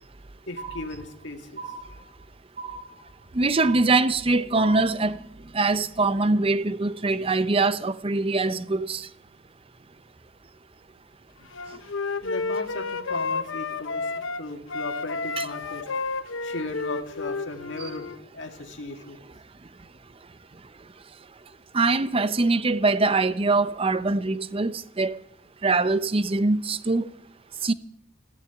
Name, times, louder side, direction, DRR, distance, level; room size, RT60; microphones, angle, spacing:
voice 1, 0.5-1.6 11.4-11.5 12.2-15.9 16.4-19.2, left 2 dB, 65° left, 2.0 m, -37 dB
sound 1, 0.6-1.2 1.6-2.2 2.6-3.2 3.6-4.2 4.6-5.2, right 4 dB, 45° right, 3.2 m, -39 dB
voice 2, 3.3-5.2 5.5-9.1 15.4-15.5 21.7-25.2 25.6-27.1 27.6-27.7, right 3 dB, 30° right, 0.6 m, -23 dB
Wind instrument woodwind instrument, 11.5-14.4 14.7-18.2, left 4 dB, 80° left, 0.8 m, -31 dB
14.5 x 12.0 x 8.0 m
head